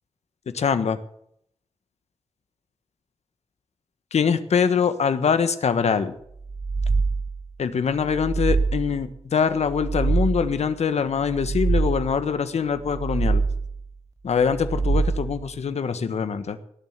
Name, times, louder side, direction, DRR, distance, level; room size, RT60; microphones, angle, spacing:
voice 1, 0.5-1.0 4.1-6.1 7.6-13.4 14.2-16.6, left 6 dB, 85° left, 11 dB, 1.3 m, -23 dB
sound 1, 6.4-7.5 8.0-9.1 9.6-10.7 11.2-12.3 12.8-13.9 14.4-15.5, right 4 dB, 30° right, 0.5 m, -25 dB
18.5 x 7.5 x 8.1 m, 0.70 s
wide cardioid pair, 160°, 11 cm